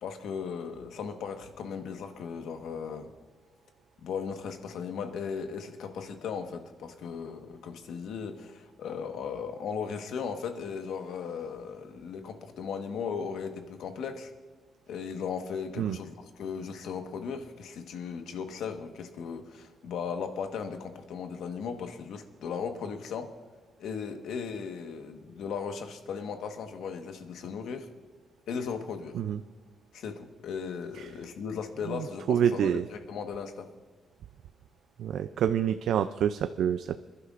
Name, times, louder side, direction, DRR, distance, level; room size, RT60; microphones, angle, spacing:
voice 1, 0.0-3.1 4.0-14.3 14.9-23.3 23.8-27.9 28.5-29.2 29.9-33.7, left 6 dB, 85° left, 6 dB, 1.3 m, -37 dB
voice 2, 31.9-32.9 35.0-37.0, right 9 dB, 75° right, 10 dB, 0.4 m, -27 dB
27.0 x 11.5 x 2.5 m, 1.4 s
cardioid pair, 155°, 0 cm